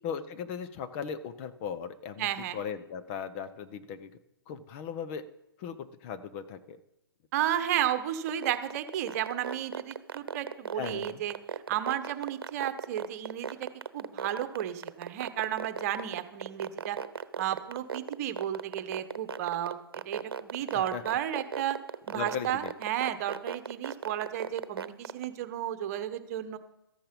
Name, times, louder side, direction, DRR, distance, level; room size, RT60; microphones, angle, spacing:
voice 1, 0.0-4.1 4.5-5.2 5.6-6.8 10.7-11.2 20.7-21.0 22.1-22.7, left 7 dB, 35° left, 9 dB, 1.0 m, -38 dB
voice 2, 2.2-2.6 7.3-11.3 11.7-13.6 13.9-17.0 17.4-19.8 20.0-21.8 22.1-26.6, right 11 dB, 40° right, 10 dB, 1.3 m, -33 dB
sound 1, 8.3-25.2, right 6 dB, 70° right, 1.0 m, -35 dB
14.0 x 10.0 x 5.4 m, 0.91 s
hypercardioid pair, 135°, 13 cm